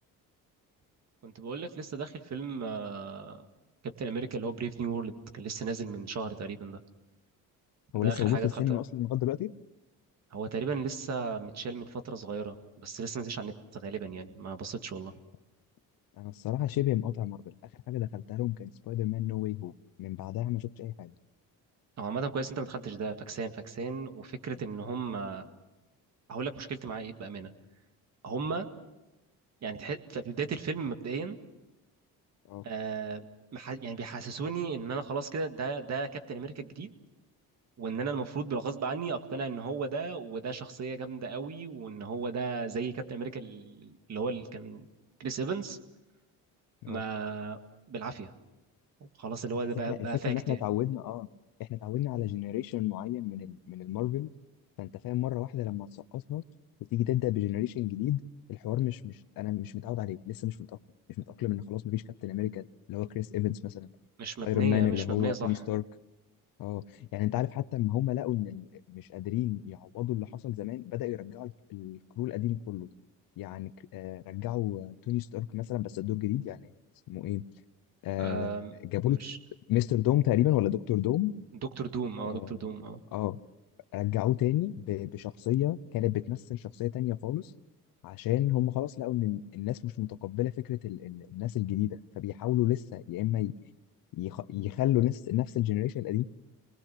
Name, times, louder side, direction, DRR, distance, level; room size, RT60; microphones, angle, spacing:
voice 1, 1.2-3.4 3.8-6.8 7.9-8.8 10.3-15.1 22.0-25.5 26.3-27.5 28.2-28.7 29.6-31.4 32.6-33.3 33.5-36.9 37.8-44.9 45.2-45.8 46.9-47.6 47.9-48.3 49.2-50.6 64.2-65.5 78.2-78.7 79.1-79.4 81.8-83.0, right 4 dB, 50° right, 7 dB, 2.1 m, -35 dB
voice 2, 7.9-9.5 16.2-17.5 17.9-19.7 20.0-21.1 32.5-32.6 46.8-47.0 49.9-51.3 51.6-54.3 54.8-55.9 56.1-56.4 56.9-58.2 58.5-60.6 61.2-63.9 64.4-65.8 66.6-66.8 67.1-72.9 73.4-76.7 77.1-77.4 78.0-79.2 79.7-81.3 82.2-82.6 83.1-83.4 83.9-87.5 88.0-93.5 94.2-96.2, left 14 dB, 70° left, 16 dB, 0.8 m, -31 dB
28.5 x 20.0 x 6.1 m, 1.0 s
cardioid pair, 110°, 36 cm